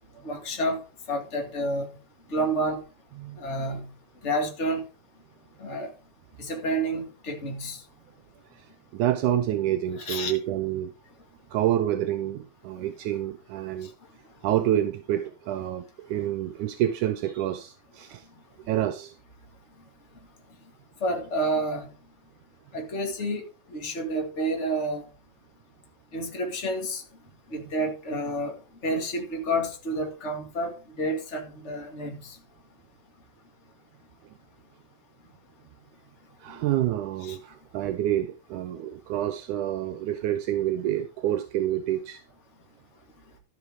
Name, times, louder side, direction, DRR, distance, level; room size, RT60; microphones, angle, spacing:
voice 1, 0.2-0.8 1.1-1.9 2.3-2.8 3.4-3.9 4.2-4.8 5.6-5.9 6.4-7.8 10.1-10.4 21.0-21.9 22.7-23.4 23.7-25.0 26.1-27.0 27.5-28.6 28.8-32.2 37.2-37.4, right 1 dB, 25° left, 3 dB, 1.9 m, -29 dB
voice 2, 8.5-10.9 11.5-13.9 14.4-18.3 18.7-19.2 36.4-42.2, right 12 dB, 80° right, 9 dB, 2.2 m, -28 dB
13.0 x 6.0 x 4.9 m, 0.33 s
omnidirectional pair, 3.5 m